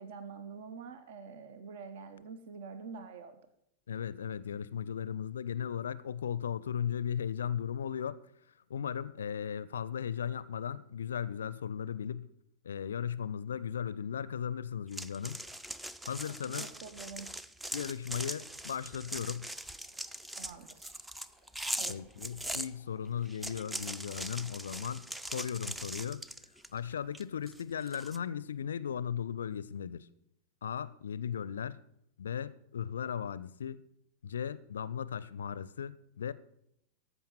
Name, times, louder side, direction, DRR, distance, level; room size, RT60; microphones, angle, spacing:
voice 1, 0.0-3.4 16.6-17.3 20.3-21.1 21.8-22.0, right 5 dB, 55° right, 0.9 m, -46 dB
voice 2, 3.9-8.2 8.7-12.3 12.6-15.4 16.1-16.7 17.7-19.5 21.9-26.2 26.7-30.1 30.6-31.8 32.2-33.8 34.2-36.3, left 8 dB, 65° left, 0.4 m, -36 dB
sound 1, 14.9-22.7 23.2-26.8 27.1-28.2, right 1 dB, 5° right, 0.4 m, -41 dB
Stream, 19.5-24.8, right 1 dB, 25° right, 5.1 m, -67 dB
14.5 x 5.7 x 5.8 m
figure-of-eight pair, 90°, 0 cm